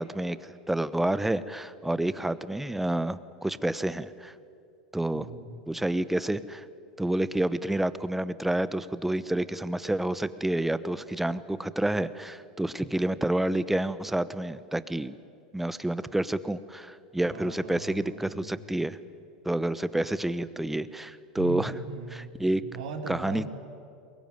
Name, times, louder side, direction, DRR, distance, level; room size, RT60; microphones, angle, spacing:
voice 1, 0.0-4.3 4.9-5.3 5.7-6.6 7.0-15.1 15.5-19.0 19.4-21.7 22.1-22.6 23.1-23.5, right 1 dB, 5° right, 15 dB, 1.0 m, -29 dB
voice 2, 5.1-5.6 17.3-18.6 20.0-20.1 21.4-22.3 22.6-23.5, right 3 dB, 70° right, 4 dB, 3.4 m, -39 dB
24.0 x 21.0 x 9.2 m, 2.4 s
hypercardioid pair, 90°, 4 cm